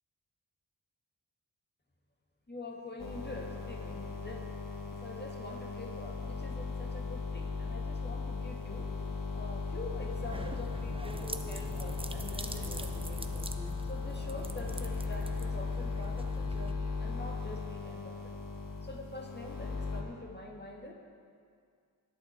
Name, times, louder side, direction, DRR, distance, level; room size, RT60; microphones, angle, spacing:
voice 1, 2.5-4.4 5.0-9.1 9.3-13.2 13.8-18.2 18.8-20.9, left 2 dB, 25° left, 0 dB, 1.8 m, -45 dB
sound 1, 3.0-20.0, left 4 dB, 55° left, 1.4 m, -37 dB
sound 2, 10.1-16.7, right 2 dB, 15° right, 0.7 m, -44 dB
19.5 x 7.0 x 4.4 m, 2.2 s
wide cardioid pair, 60°, 39 cm